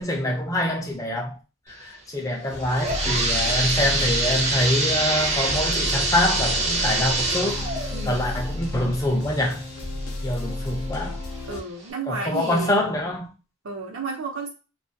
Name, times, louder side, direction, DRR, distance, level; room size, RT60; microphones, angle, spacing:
voice 1, 0.0-1.4 1.7-7.6 8.1-9.6 10.2-11.2 12.1-13.3, left 1 dB, 15° left, 0.4 m, -25 dB
sound 1, 2.4-10.0 10.5-10.6 11.3-11.4 11.9-12.0, right 2 dB, 35° right, 0.5 m, -26 dB
sound 2, 2.5-11.6, left 2 dB, 85° left, 0.5 m, -32 dB
voice 2, 7.9-8.3 11.5-12.8 13.6-14.5, right 3 dB, 80° right, 0.7 m, -32 dB
2.3 x 2.3 x 2.6 m
head